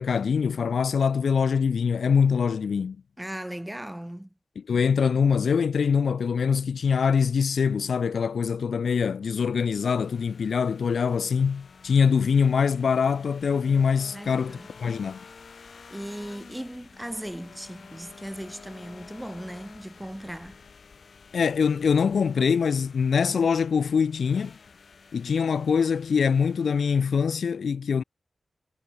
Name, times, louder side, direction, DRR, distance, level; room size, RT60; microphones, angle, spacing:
voice 1, 0.0-3.0 4.6-15.2 21.3-24.6 25.1-28.0, left 6 dB, 80° left, 0.5 m, -24 dB
voice 2, 3.2-4.3 14.1-14.7 15.9-20.6, right 1 dB, 5° right, 2.0 m, -38 dB
sound 1, 9.5-27.3, left 5 dB, 65° left, 6.4 m, -50 dB
wide cardioid pair, 95°, 0 cm